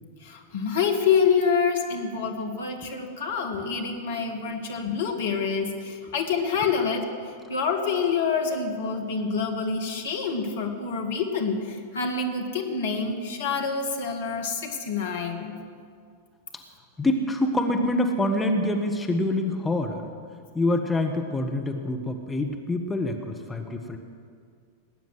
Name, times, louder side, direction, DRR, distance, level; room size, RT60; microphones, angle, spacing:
voice 1, 0.2-7.1 7.5-15.5, left 5 dB, 60° left, 4 dB, 1.9 m, -27 dB
voice 2, 17.0-20.1 20.5-24.0, left 1 dB, 10° left, 3 dB, 1.3 m, -26 dB
19.0 x 9.2 x 7.9 m, 2.2 s
figure-of-eight pair, 90°, 0 cm